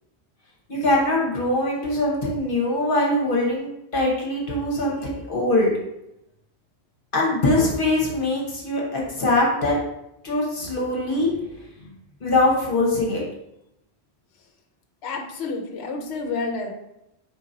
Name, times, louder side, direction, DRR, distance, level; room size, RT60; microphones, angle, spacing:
voice 1, 0.7-5.7 7.1-9.8 10.2-11.5 11.8-11.9 12.2-13.2, left 2 dB, 55° left, -2 dB, 1.2 m, -22 dB
voice 2, 15.0-16.7, left 3 dB, 75° left, 3 dB, 0.9 m, -29 dB
4.5 x 2.8 x 3.8 m, 0.85 s
omnidirectional pair, 1.1 m